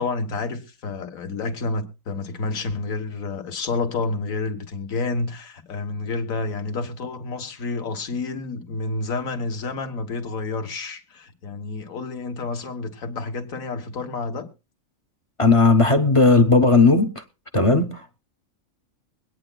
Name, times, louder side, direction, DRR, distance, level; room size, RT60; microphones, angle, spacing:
voice 1, 0.0-14.5, left 3 dB, 90° left, 1.6 m, -29 dB
voice 2, 15.4-17.2 17.5-18.2, left 3 dB, 40° left, 0.5 m, -16 dB
23.0 x 9.0 x 2.2 m
omnidirectional pair, 1.4 m